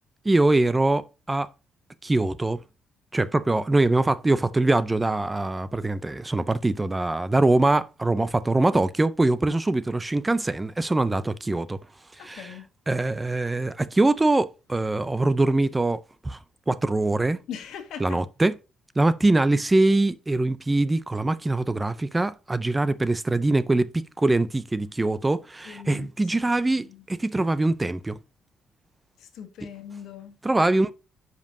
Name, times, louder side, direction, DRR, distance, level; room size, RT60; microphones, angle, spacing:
voice 1, 0.2-1.5 2.0-2.6 3.1-11.8 12.2-12.5 12.9-16.4 16.7-17.4 18.0-18.6 19.0-28.2 30.4-30.9, right 2 dB, 15° right, 0.4 m, -23 dB
voice 2, 12.2-12.7 17.5-18.2 25.6-26.1 26.6-27.0 29.2-30.4, left 8 dB, 80° left, 1.5 m, -40 dB
10.5 x 5.3 x 2.6 m
cardioid pair, 120°, 0 cm